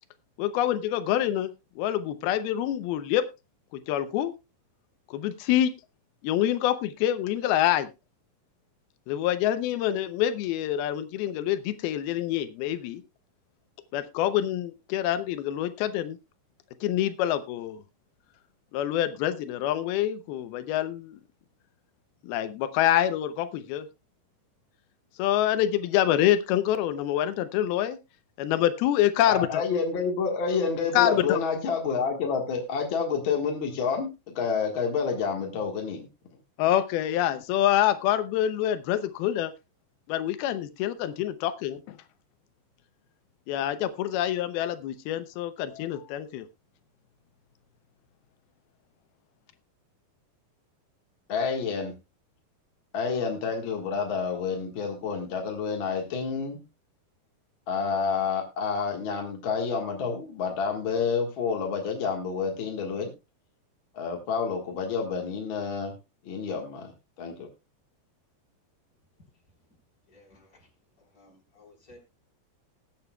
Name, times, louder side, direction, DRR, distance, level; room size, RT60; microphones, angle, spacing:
voice 1, 0.4-1.5 1.8-3.3 3.7-4.3 5.1-5.7 6.2-7.9 9.1-13.0 13.9-16.2 16.8-17.8 18.7-21.2 22.2-23.9 25.2-28.0 28.4-29.6 30.9-31.4 36.6-39.5 40.1-42.0 43.5-46.5, left 12 dB, 90° left, 11 dB, 2.7 m, -26 dB
voice 2, 29.3-36.1 51.3-51.9 52.9-56.6 57.7-63.1 63.9-65.9 66.2-66.9 67.2-67.5, left 5 dB, 50° left, 2 dB, 1.7 m, -29 dB
voice 3, 70.1-70.7 71.0-72.0, left 2 dB, 25° left, 0 dB, 4.2 m, -56 dB
20.0 x 8.7 x 2.3 m, 0.25 s
omnidirectional pair, 4.3 m